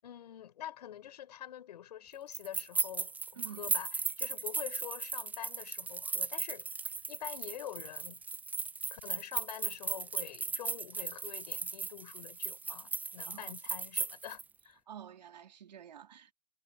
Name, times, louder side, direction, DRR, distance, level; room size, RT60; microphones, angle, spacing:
voice 1, 0.0-8.2 8.9-14.8, left 11 dB, 75° left, 7.9 m, -46 dB
sound 1, 2.3-14.4, right 4 dB, 10° right, 0.4 m, -37 dB
voice 2, 3.4-3.7 13.3-13.5 14.9-16.3, right 9 dB, 85° right, 3.5 m, -49 dB
hypercardioid pair, 110°, 21 cm